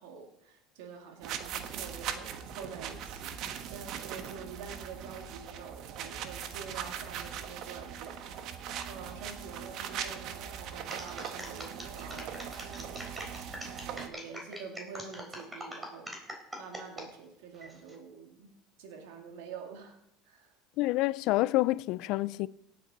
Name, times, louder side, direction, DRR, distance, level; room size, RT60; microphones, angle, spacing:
voice 1, 0.0-3.4 3.7-13.1 13.9-18.5 18.8-20.5, right 6 dB, 85° right, 2.1 m, -47 dB
sound 1, 1.2-14.1, right 8 dB, 60° right, 1.2 m, -40 dB
sound 2, 10.9-17.1 17.5-18.0, equal, 15° right, 3.7 m, -43 dB
voice 2, 20.8-22.5, left 19 dB, 65° left, 0.4 m, -28 dB
18.0 x 8.6 x 4.0 m
supercardioid pair, 100°, 0 cm